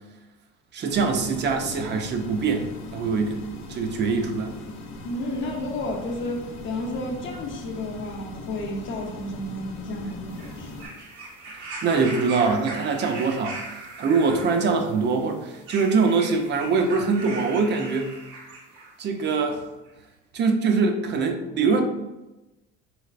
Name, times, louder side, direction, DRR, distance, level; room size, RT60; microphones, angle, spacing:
voice 1, 0.7-3.4 3.7-4.5 11.8-13.6 14.0-18.1 19.0-19.7 20.3-21.8, right 4 dB, 35° right, 4 dB, 0.5 m, -23 dB
sound 1, 0.9-10.9, left 2 dB, 90° left, 0.7 m, -40 dB
voice 2, 5.0-10.8, left 1 dB, 40° left, 1 dB, 0.7 m, -32 dB
sound 2, 10.3-19.0 19.9-20.0, right 3 dB, 85° right, 0.9 m, -39 dB
3.2 x 3.1 x 2.4 m, 1.0 s
cardioid pair, 115°, 30 cm